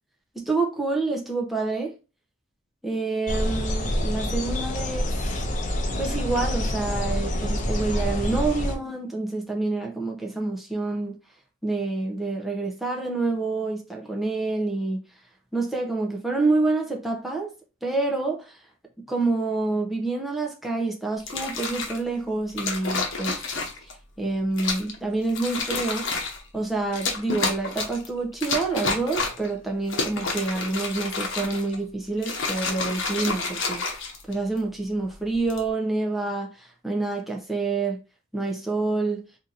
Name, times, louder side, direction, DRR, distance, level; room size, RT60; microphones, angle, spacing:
voice 1, 0.3-1.9 2.8-5.2 6.0-11.2 11.6-15.0 15.5-17.5 17.8-18.6 19.1-23.4 24.2-26.1 26.5-33.8 34.3-38.0 38.3-39.2, right 3 dB, ahead, 0.7 m, -27 dB
sound 1, 3.3-8.7, left 1 dB, 35° left, 0.6 m, -27 dB
sound 2, 21.2-22.0 22.6-23.9 24.6-24.9 25.3-26.4 26.9-28.1 28.4-29.5 29.8-31.8 32.2-34.6 35.3-35.7, left 4 dB, 65° left, 0.9 m, -29 dB
2.8 x 2.7 x 3.8 m
head